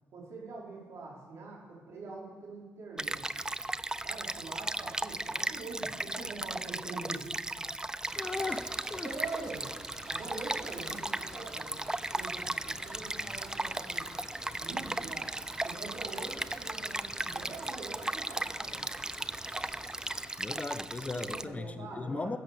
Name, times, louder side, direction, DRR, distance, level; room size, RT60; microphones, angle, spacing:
voice 1, 0.1-3.2 4.0-7.3 9.0-9.7 10.0-11.8 12.1-14.1 14.6-15.3 15.6-18.9 21.1-22.4, right 3 dB, 65° right, -3 dB, 4.5 m, -44 dB
Stream, 3.0-21.4, right 2 dB, 15° right, 0.5 m, -36 dB
sound 1, 8.0-20.3, equal, 5° left, 3.7 m, -50 dB
voice 2, 8.2-9.1 9.4-9.5 20.4-22.4, left 3 dB, 25° left, 11 dB, 0.8 m, -37 dB
15.0 x 7.5 x 6.9 m, 1.4 s
supercardioid pair, 65°, 5 cm